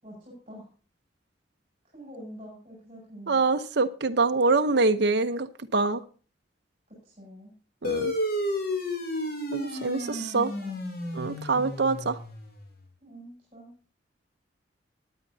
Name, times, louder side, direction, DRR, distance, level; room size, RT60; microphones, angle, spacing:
voice 1, 0.0-0.7 1.9-3.4 6.9-7.5 10.1-10.3 10.6-10.7 13.0-13.7, equal, 35° right, -4 dB, 6.7 m, -46 dB
voice 2, 3.3-6.0 7.8-8.1 9.5-10.5 11.1-12.2, right 3 dB, 65° right, 9 dB, 0.9 m, -25 dB
sound 1, 7.8-12.7, left 1 dB, 55° left, 3.0 m, -32 dB
19.0 x 9.7 x 2.8 m, 0.38 s
head